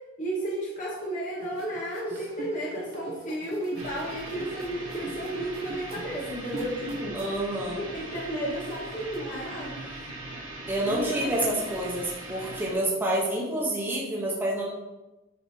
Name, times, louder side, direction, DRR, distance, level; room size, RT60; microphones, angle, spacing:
voice 1, 0.2-7.2 7.7-9.8 10.8-11.6, right 1 dB, 40° left, -5 dB, 2.2 m, -33 dB
sound 1, 1.4-7.6 7.9-9.2, right 1 dB, 50° right, 1.1 m, -42 dB
sound 2, 3.7-12.7, right 2 dB, 70° right, 2.5 m, -40 dB
voice 2, 7.1-7.8 10.7-14.6, right 1 dB, 10° right, -6 dB, 1.6 m, -28 dB
9.7 x 4.3 x 4.5 m, 1.0 s
head